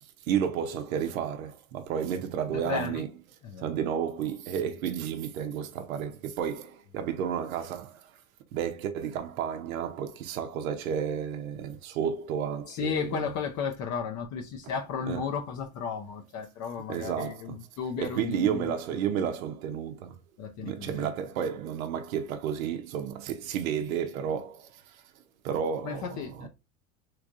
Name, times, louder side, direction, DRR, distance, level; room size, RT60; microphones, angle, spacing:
voice 1, 0.0-3.1 3.6-8.2 8.5-13.3 15.1-15.2 16.9-17.6 18.0-20.2 20.6-25.0 25.4-26.5, right 8 dB, 85° right, 0.7 m, -32 dB
voice 2, 2.5-3.0 3.4-3.7 12.7-18.7 20.4-21.1 25.8-26.5, left 6 dB, 45° left, 0.8 m, -34 dB
3.4 x 3.1 x 2.4 m
hypercardioid pair, 90°, 40 cm